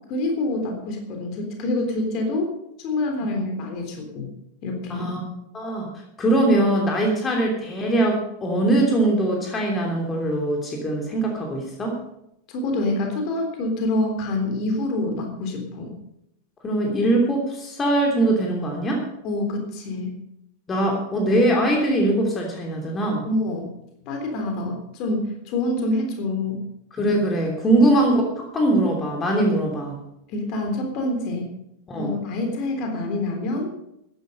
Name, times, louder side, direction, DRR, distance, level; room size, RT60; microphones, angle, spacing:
voice 1, 0.1-2.5 2.8-4.3 4.6-5.1 12.5-15.9 19.2-20.2 23.2-23.7 24.1-26.6 27.8-27.9 30.3-31.5 31.9-33.7, left 2 dB, 40° left, 3 dB, 3.5 m, -26 dB
voice 2, 5.5-5.9 6.2-12.0 16.6-19.0 20.7-23.2 26.9-30.0 31.9-32.2, right 1 dB, 20° left, 0 dB, 3.1 m, -22 dB
14.5 x 11.0 x 5.4 m, 0.79 s
figure-of-eight pair, 90°, 0 cm